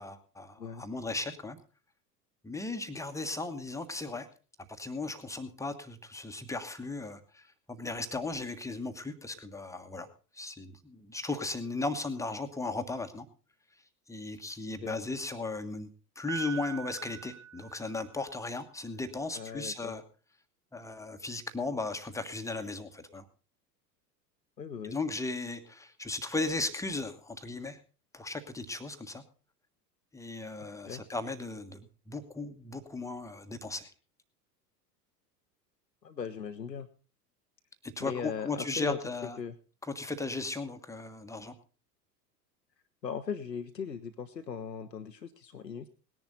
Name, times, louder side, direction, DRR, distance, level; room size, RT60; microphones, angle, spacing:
voice 1, 0.0-1.6 2.4-4.3 4.6-10.1 10.3-13.3 14.1-15.9 16.2-20.0 20.7-23.3 24.8-27.8 28.1-29.2 30.1-33.9 37.8-39.4 39.8-41.5, left 3 dB, 5° left, 8 dB, 1.2 m, -36 dB
Piano, 16.3-18.4, right 9 dB, 65° right, 1.2 m, -43 dB
voice 2, 19.3-19.9 24.6-25.0 30.9-31.0 36.0-36.9 38.0-39.0 39.4-39.5 43.0-45.9, left 6 dB, 85° left, 8 dB, 0.9 m, -38 dB
18.5 x 10.5 x 4.0 m, 0.36 s
figure-of-eight pair, 85°, 49 cm